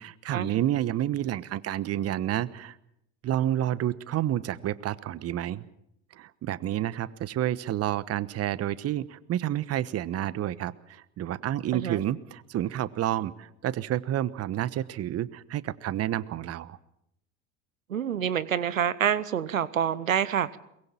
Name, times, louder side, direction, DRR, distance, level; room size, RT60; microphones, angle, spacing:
voice 1, 0.0-2.8 3.2-5.7 6.1-16.8, right 12 dB, 40° right, 18 dB, 1.1 m, -29 dB
voice 2, 17.9-20.6, right 9 dB, 90° right, 18 dB, 0.9 m, -27 dB
23.0 x 21.5 x 7.2 m, 0.77 s
hypercardioid pair, 75°, 39 cm